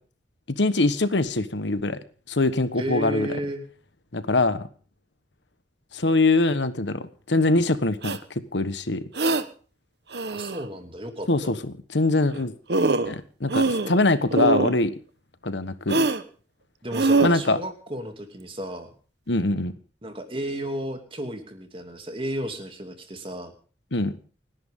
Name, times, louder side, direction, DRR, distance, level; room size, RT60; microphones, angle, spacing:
voice 1, 0.6-2.0 2.3-3.3 4.1-4.7 5.9-8.2 8.5-9.0 11.3-11.6 11.9-12.5 13.1-14.9 15.4-16.0 17.2-17.6 19.3-19.7 23.9-24.2, left 2 dB, 80° left, 12 dB, 1.3 m, -23 dB
voice 2, 2.8-3.6 10.3-11.6 16.8-18.9 20.0-23.5, right 1 dB, 30° right, 5 dB, 2.7 m, -33 dB
sound 1, 8.0-8.2 9.1-9.4 10.1-10.6 12.3-12.4 12.7-13.1 13.5-14.0 14.3-14.8 15.9-16.2 16.9-17.3, right 3 dB, 65° right, 1.2 m, -23 dB
29.5 x 10.5 x 3.7 m, 0.40 s
head